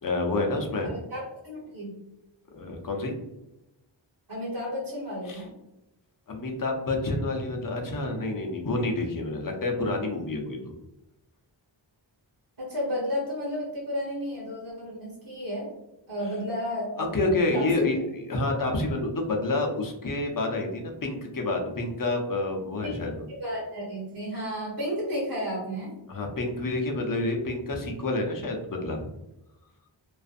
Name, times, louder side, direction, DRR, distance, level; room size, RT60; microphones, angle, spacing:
voice 1, 0.0-0.9 2.5-3.1 5.3-5.4 6.3-10.7 17.0-23.1 26.1-29.1, left 2 dB, 45° left, 2 dB, 0.6 m, -28 dB
voice 2, 0.8-2.0 4.3-5.5 12.6-15.7 16.1-17.7 22.8-22.9 23.3-25.9, equal, 50° right, -6 dB, 1.2 m, -32 dB
2.4 x 2.4 x 2.4 m, 0.91 s
wide cardioid pair, 55°, 46 cm